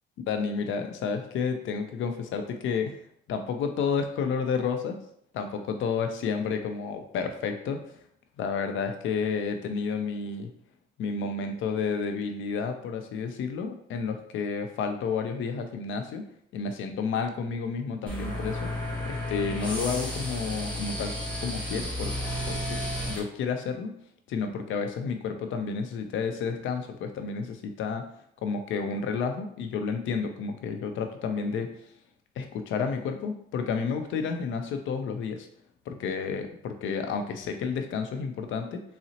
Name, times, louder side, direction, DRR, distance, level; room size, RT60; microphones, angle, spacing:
voice 1, 0.3-3.0 3.3-5.0 5.3-7.8 8.4-10.5 11.0-16.2 16.5-18.7 19.1-21.1 21.4-22.1 22.5-22.8 23.1-23.9 24.3-28.0 28.4-31.7 32.4-35.5 35.9-38.8, left 5 dB, 75° left, 6 dB, 0.5 m, -31 dB
sound 1, 18.1-23.2, equal, 5° left, 1.2 m, -32 dB
3.9 x 2.0 x 2.7 m, 0.69 s
cardioid pair, 90°, 20 cm